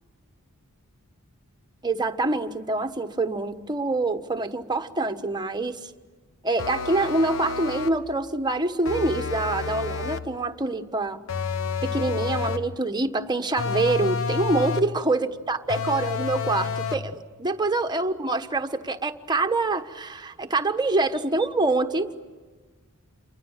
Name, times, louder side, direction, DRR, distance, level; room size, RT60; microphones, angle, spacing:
voice 1, 1.8-5.9 6.4-11.2 11.8-22.2, right 2 dB, 20° right, 7 dB, 1.2 m, -26 dB
sound 1, 6.6-8.1 8.9-10.4 11.3-12.8 13.6-15.0 15.7-17.1, left 5 dB, 65° left, 1.1 m, -29 dB
28.5 x 23.5 x 7.3 m, 1.4 s
head